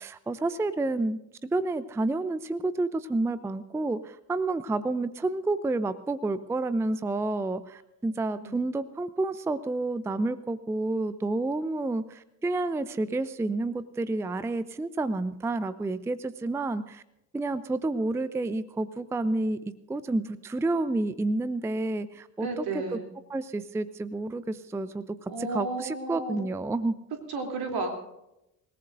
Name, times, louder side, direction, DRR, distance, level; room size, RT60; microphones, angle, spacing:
voice 1, 0.0-17.0 17.3-22.6 22.9-23.0 23.3-27.0, right 2 dB, 5° right, 15 dB, 0.5 m, -30 dB
voice 2, 22.4-23.1 25.3-26.4 27.3-28.0, right 3 dB, 45° right, 3 dB, 3.3 m, -33 dB
26.5 x 18.0 x 2.6 m, 0.85 s
figure-of-eight pair, 55°, 50 cm